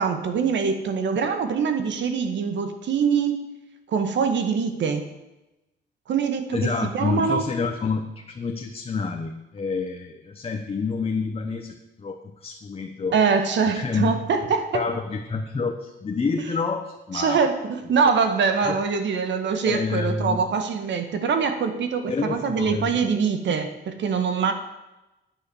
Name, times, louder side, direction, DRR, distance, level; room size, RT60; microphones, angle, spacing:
voice 1, 0.0-3.5 3.9-5.0 6.1-6.7 6.9-7.5 13.1-14.8 17.1-24.5, right 6 dB, 65° right, 7 dB, 1.7 m, -23 dB
voice 2, 6.5-13.2 13.7-14.1 14.7-17.4 18.6-18.8 19.6-20.4 22.1-23.0, left 4 dB, 30° left, 3 dB, 1.1 m, -28 dB
9.5 x 9.3 x 7.2 m, 0.98 s
cardioid pair, 90°, 20 cm